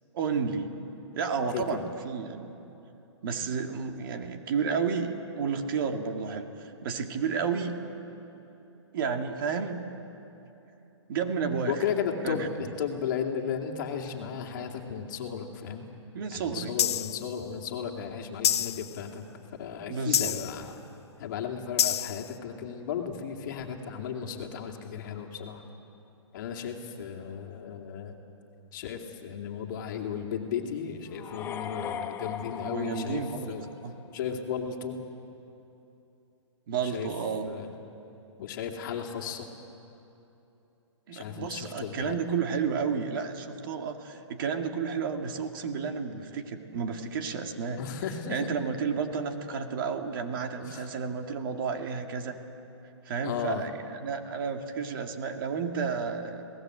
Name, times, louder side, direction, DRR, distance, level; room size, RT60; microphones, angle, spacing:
voice 1, 0.1-0.8 1.2-2.6 3.2-7.7 8.9-9.8 11.1-11.8 12.2-12.5 16.1-16.7 19.9-20.3 32.7-33.5 33.8-33.9 36.7-37.5 41.1-47.8 48.3-52.4 53.0-56.4, right 6 dB, 45° right, 5 dB, 2.1 m, -31 dB
voice 2, 1.5-1.8 11.7-15.9 16.3-19.3 19.6-20.8 21.2-25.6 26.3-28.2 28.7-33.7 34.1-35.0 36.8-37.1 37.5-37.7 38.4-39.5 41.1-42.1 47.8-48.5 50.6-50.9 53.2-53.6, left 7 dB, 40° left, 2 dB, 2.5 m, -35 dB
sound 1, 16.8-17.2 18.4-19.0 20.1-20.6 21.8-22.3, left 10 dB, 60° left, 0.6 m, -27 dB
sound 2, 31.1-34.1, left 8 dB, 15° left, 0.8 m, -38 dB
27.0 x 18.5 x 7.9 m, 3.0 s
hypercardioid pair, 155°, 16 cm